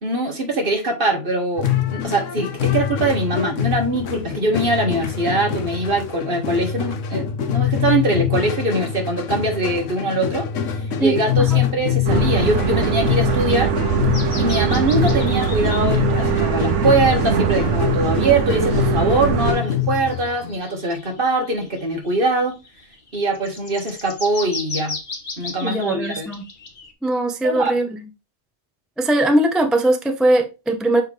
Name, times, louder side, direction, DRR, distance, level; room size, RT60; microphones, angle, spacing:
voice 1, 0.0-10.5 11.0-13.7 14.4-22.5 23.1-25.0 25.4-26.3 27.4-27.7, right 2 dB, 45° right, 1.8 m, -22 dB
sound 1, 1.6-20.6, left 9 dB, 75° left, 1.1 m, -24 dB
sound 2, 12.1-19.5, right 7 dB, 70° right, 1.1 m, -21 dB
sound 3, 14.1-16.3 16.9-17.0 17.9-18.0 19.9-26.9, left 3 dB, 40° left, 1.3 m, -36 dB
voice 2, 25.6-26.4 27.0-27.9 29.0-31.0, right 1 dB, ahead, 0.3 m, -19 dB
6.5 x 4.7 x 3.3 m
omnidirectional pair, 1.3 m